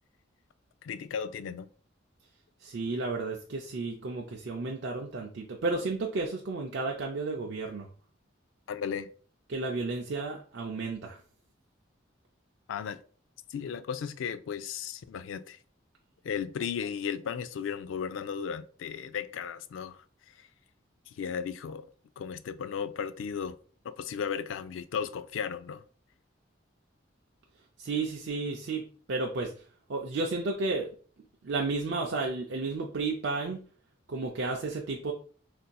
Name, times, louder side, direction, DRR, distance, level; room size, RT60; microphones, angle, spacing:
voice 1, 0.8-1.7 8.7-9.1 12.7-13.0 13.5-15.6 16.2-20.0 20.4-20.5 21.1-21.9 22.2-23.6 23.8-25.8, left 7 dB, 80° left, 0.3 m, -35 dB
voice 2, 2.6-7.9 9.5-11.2 27.8-29.5 29.9-30.9 31.4-33.6 34.1-35.1, right 3 dB, 65° right, 0.4 m, -32 dB
4.0 x 2.6 x 2.2 m
head